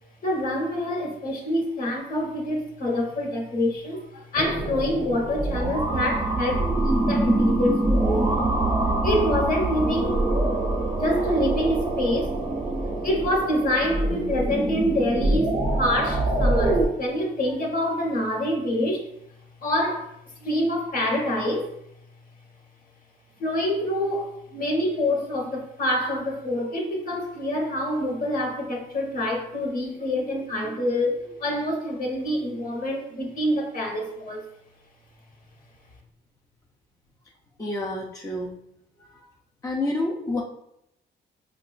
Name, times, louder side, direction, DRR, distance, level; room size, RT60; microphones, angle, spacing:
voice 1, 0.2-8.4 9.0-10.2 10.9-12.4 13.0-19.0 19.6-21.8 23.4-34.4, left 1 dB, 45° left, 0 dB, 1.1 m, -26 dB
sound 1, 4.4-16.9, right 2 dB, 20° right, 0.9 m, -24 dB
voice 2, 37.6-38.5 39.6-40.4, left 2 dB, 15° left, -1 dB, 0.5 m, -28 dB
4.7 x 2.3 x 2.4 m, 0.77 s
cardioid pair, 90°, 20 cm